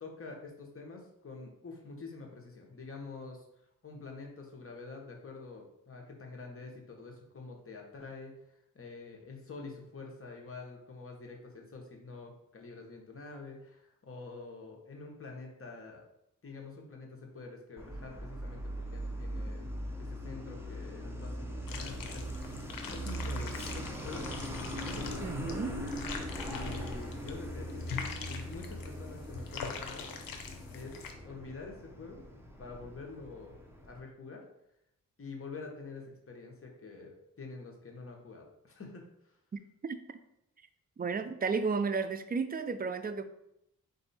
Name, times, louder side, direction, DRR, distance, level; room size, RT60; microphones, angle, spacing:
voice 1, 0.0-3.5 3.8-16.0 16.4-19.7 20.0-22.3 22.9-24.3 24.8-25.7 26.1-26.2 26.5-27.8 28.2-30.3 30.7-32.2 32.6-33.6 33.9-34.5 35.2-39.4, left 3 dB, 40° left, 1 dB, 1.1 m, -47 dB
Truck, 17.8-34.0, equal, 5° right, 0.8 m, -40 dB
sound 1, 21.7-31.1, left 5 dB, 75° left, 0.7 m, -43 dB
voice 2, 25.2-25.7 39.8-40.0 41.0-43.2, right 5 dB, 25° right, 10 dB, 0.4 m, -32 dB
4.3 x 2.6 x 4.1 m, 0.80 s
cardioid pair, 65°, 35 cm